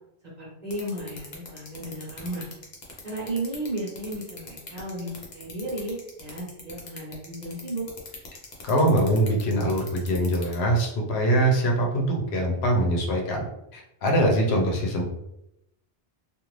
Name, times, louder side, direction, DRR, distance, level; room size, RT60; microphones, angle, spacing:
voice 1, 0.4-2.5 3.0-7.9, right 1 dB, 40° right, -6 dB, 1.2 m, -34 dB
sound 1, 0.7-10.5, left 4 dB, 45° left, 0.8 m, -41 dB
voice 2, 8.6-13.4 13.7-15.0, right 1 dB, 75° left, 0 dB, 1.0 m, -23 dB
2.6 x 2.5 x 3.1 m, 0.83 s
omnidirectional pair, 1.1 m